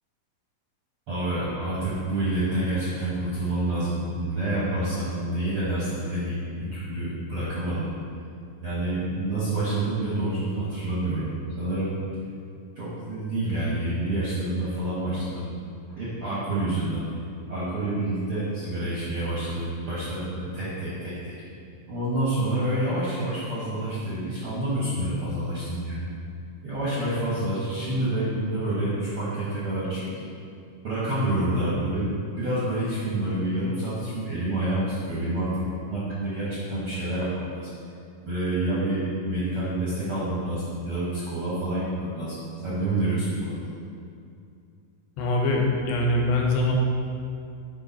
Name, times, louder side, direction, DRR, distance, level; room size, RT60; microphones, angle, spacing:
voice 1, 1.1-7.9 8.6-11.9 12.7-15.4 15.9-17.1 17.5-21.5 21.9-26.1 26.6-30.3 30.8-37.7 38.2-43.7, right 1 dB, 55° right, -10 dB, 1.6 m, -28 dB
voice 2, 45.2-46.7, left 2 dB, 90° left, 0 dB, 2.7 m, -23 dB
6.8 x 4.9 x 4.1 m, 2.4 s
omnidirectional pair, 4.1 m